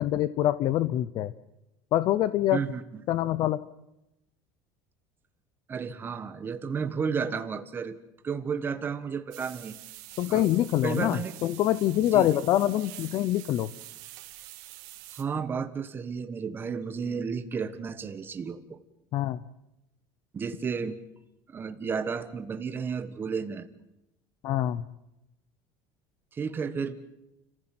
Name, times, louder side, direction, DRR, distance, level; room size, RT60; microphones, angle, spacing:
voice 1, 0.0-1.3 1.9-2.6 3.1-3.6 10.2-13.7 19.1-19.4 24.4-24.8, left 13 dB, 50° left, 16 dB, 0.8 m, -25 dB
voice 2, 2.5-3.0 5.7-8.0 8.2-9.8 10.3-10.5 10.8-11.4 12.1-12.3 15.1-18.8 20.3-21.0 21.5-23.7 26.3-27.0, right 6 dB, 25° right, 10 dB, 1.5 m, -32 dB
sound 1, 9.3-15.2, right 16 dB, 85° right, 2.9 m, -46 dB
30.0 x 15.5 x 7.8 m, 0.91 s
cardioid pair, 155°, 9 cm